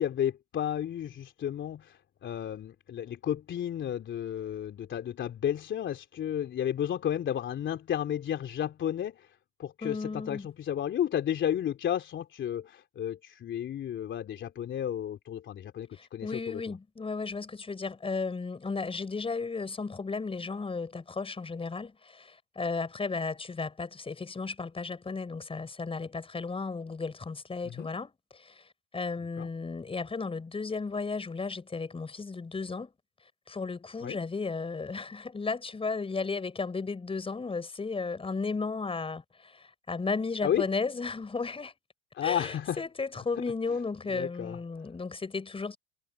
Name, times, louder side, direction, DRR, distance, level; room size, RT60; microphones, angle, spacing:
voice 1, 0.0-16.7 27.6-27.9 29.4-29.5 34.0-34.2 40.4-40.6 42.1-42.8 44.1-44.6, left 10 dB, 35° left, 3.3 m, -32 dB
voice 2, 9.8-10.5 15.9-32.9 33.5-41.7 42.2-45.8, left 4 dB, 15° left, 6.0 m, -34 dB
hypercardioid pair, 85°, 34 cm